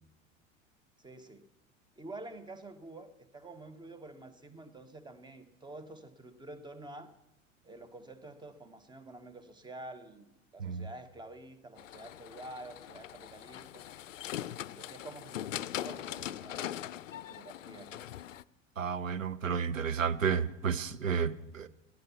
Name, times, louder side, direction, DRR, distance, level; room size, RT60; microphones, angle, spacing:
voice 1, 1.0-1.5 2.0-7.1 7.6-13.8 14.7-18.1, right 2 dB, 10° right, 1.3 m, -49 dB
sound 1, 11.8-18.4, left 11 dB, 75° left, 0.5 m, -41 dB
voice 2, 18.8-21.7, right 6 dB, 80° right, 0.8 m, -31 dB
18.0 x 12.0 x 5.8 m
figure-of-eight pair, 80°, 38 cm